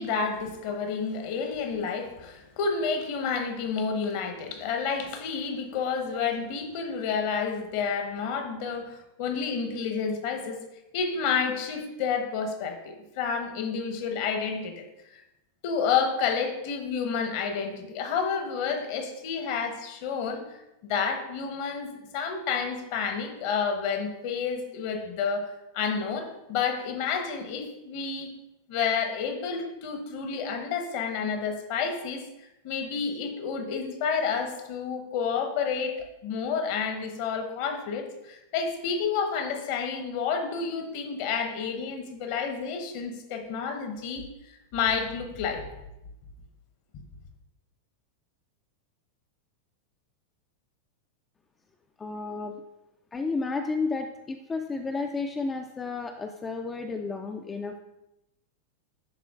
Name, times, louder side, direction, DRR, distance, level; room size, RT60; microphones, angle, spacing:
voice 1, 0.0-10.6 10.9-14.9 15.1-15.2 15.6-20.4 20.8-28.3 28.7-32.2 32.6-45.6, left 6 dB, 45° left, 5 dB, 0.9 m, -30 dB
voice 2, 52.0-52.5 53.1-57.8, left 4 dB, 15° left, 4 dB, 0.4 m, -32 dB
11.0 x 3.7 x 2.4 m, 0.90 s
figure-of-eight pair, 90°, 0 cm